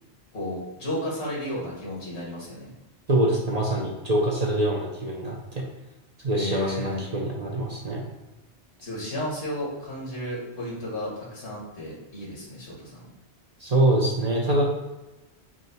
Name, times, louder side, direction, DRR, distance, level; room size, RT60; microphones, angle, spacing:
voice 1, 0.3-2.7 6.3-7.0 8.8-13.1, left 1 dB, 75° left, -5 dB, 1.7 m, -33 dB
voice 2, 3.1-5.6 6.2-8.1 13.6-14.6, right 1 dB, 45° right, -2 dB, 0.6 m, -24 dB
4.7 x 2.1 x 4.0 m, 1.0 s
omnidirectional pair, 1.1 m